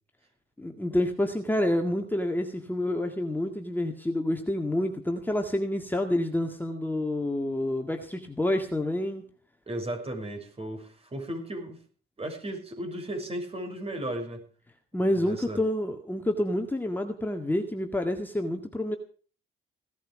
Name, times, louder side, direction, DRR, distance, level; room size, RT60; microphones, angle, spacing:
voice 1, 0.6-9.3 14.9-19.0, left 1 dB, 10° left, 4 dB, 2.0 m, -28 dB
voice 2, 9.7-11.8 12.2-14.4 15.1-15.6, right 1 dB, 30° right, 5 dB, 6.2 m, -35 dB
17.0 x 13.0 x 4.9 m, 0.42 s
cardioid pair, 90°, 20 cm